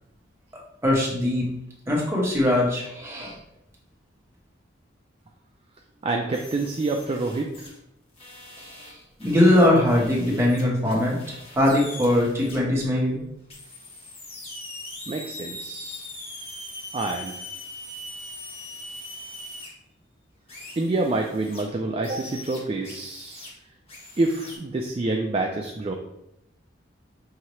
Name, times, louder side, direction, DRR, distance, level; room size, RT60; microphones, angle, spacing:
voice 1, 0.8-1.4 1.9-3.4 8.6-8.7 9.2-13.2, left 1 dB, 15° right, -4 dB, 1.1 m, -21 dB
voice 2, 6.0-7.5 15.1-16.0 16.9-17.3 20.8-23.4 24.2-25.9, right 2 dB, 30° right, 2 dB, 0.3 m, -27 dB
sound 1, 6.3-7.8 8.2-12.6 13.5-19.7 20.5-21.6 22.0-23.5 23.9-24.6, left 1 dB, 30° left, 1.2 m, -41 dB
5.7 x 2.8 x 3.1 m, 0.82 s
head